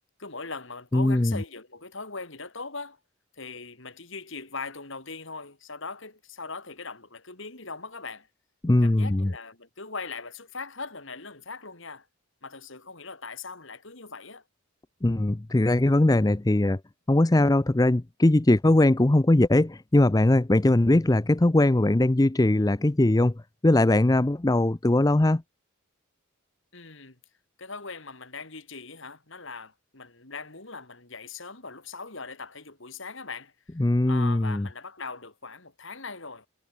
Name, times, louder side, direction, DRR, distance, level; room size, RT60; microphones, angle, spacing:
voice 1, 0.2-3.0 3.3-8.3 8.8-12.1 12.4-14.4 26.7-27.2 27.6-33.5 34.1-36.5, left 4 dB, 55° left, 3.2 m, -40 dB
voice 2, 0.9-1.4 8.6-9.3 15.0-16.8 17.1-23.3 23.6-25.4 33.8-34.7, left 1 dB, 15° left, 0.5 m, -21 dB
head